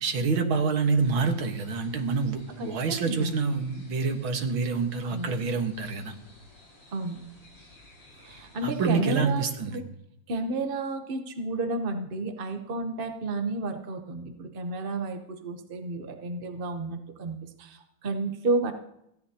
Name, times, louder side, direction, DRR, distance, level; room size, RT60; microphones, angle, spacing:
voice 1, 0.0-6.1 8.6-9.7, right 4 dB, 65° right, 4 dB, 2.2 m, -27 dB
sound 1, 1.0-8.9, left 1 dB, 90° left, 5.4 m, -55 dB
voice 2, 2.6-3.4 5.0-5.3 6.9-7.2 8.2-9.4 9.7-9.8 10.3-18.7, right 2 dB, 50° right, 6 dB, 0.6 m, -31 dB
30.0 x 10.5 x 2.9 m, 0.81 s
omnidirectional pair, 2.4 m